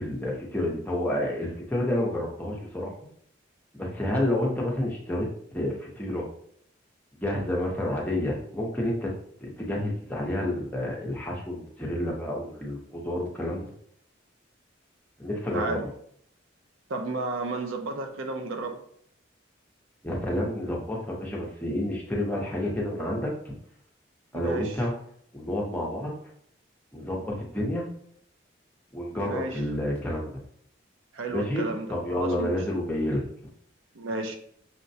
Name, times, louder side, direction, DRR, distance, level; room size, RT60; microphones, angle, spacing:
voice 1, 0.0-2.9 3.7-6.3 7.1-9.1 9.4-13.7 15.2-15.9 20.0-23.5 24.3-24.9 25.3-26.1 26.9-27.9 28.9-30.4 31.3-33.2, left 1 dB, 10° left, -3 dB, 0.7 m, -29 dB
voice 2, 15.5-15.8 16.9-18.8 24.3-24.8 29.1-29.6 31.1-31.9 32.2-32.5 34.0-34.4, right 3 dB, 90° right, 5 dB, 0.6 m, -32 dB
5.8 x 2.1 x 2.7 m, 0.66 s
head